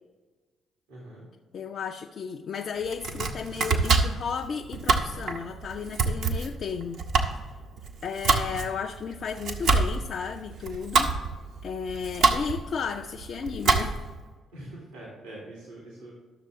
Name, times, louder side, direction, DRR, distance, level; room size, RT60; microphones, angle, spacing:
voice 1, 0.9-1.3 14.5-16.1, right 1 dB, 85° right, -4 dB, 1.9 m, -43 dB
voice 2, 1.5-7.1 8.0-11.1 11.6-14.0, left 6 dB, 55° left, 1 dB, 0.4 m, -34 dB
Domestic sounds home sounds, 2.8-14.2, right 4 dB, 70° right, 0.9 m, -27 dB
12.0 x 6.6 x 3.6 m, 1.3 s
hypercardioid pair, 45°, 0 cm